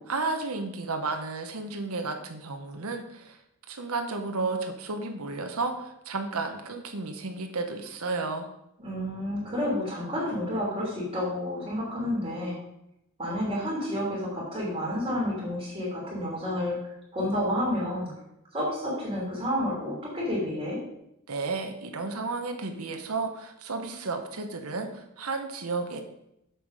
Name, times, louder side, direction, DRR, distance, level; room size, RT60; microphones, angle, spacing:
voice 1, 0.1-3.4 3.7-8.5 21.3-26.0, right 3 dB, 75° right, 5 dB, 1.0 m, -32 dB
voice 2, 8.8-12.5 13.2-18.1 18.5-20.8, left 1 dB, 25° right, -5 dB, 3.1 m, -30 dB
7.2 x 7.1 x 4.9 m, 0.82 s
head